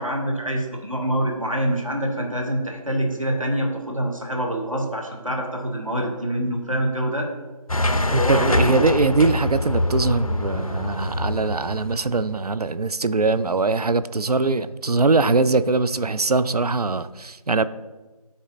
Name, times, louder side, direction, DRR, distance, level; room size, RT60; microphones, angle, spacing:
voice 1, 0.0-7.3 8.0-8.6, equal, 60° right, 1 dB, 1.3 m, -25 dB
sound 1, 7.7-12.4, left 1 dB, 60° left, 0.5 m, -24 dB
voice 2, 8.1-17.6, right 3 dB, 75° right, 14 dB, 0.4 m, -22 dB
12.5 x 4.2 x 2.6 m, 1.2 s
figure-of-eight pair, 180°, 20 cm